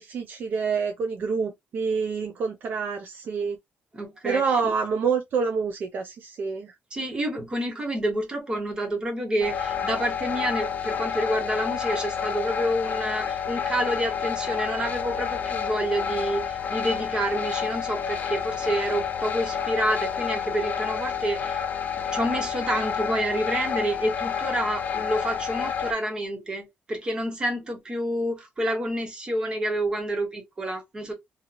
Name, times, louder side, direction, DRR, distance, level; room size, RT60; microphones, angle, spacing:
voice 1, 0.0-3.6 4.2-6.7, right 5 dB, 55° right, 0.4 m, -27 dB
voice 2, 3.9-4.6 6.9-21.6 21.9-31.1, right 1 dB, 20° right, 1.0 m, -28 dB
sound 1, 9.4-25.9, left 7 dB, 45° left, 0.4 m, -29 dB
2.9 x 2.7 x 2.3 m
wide cardioid pair, 175°, 4 cm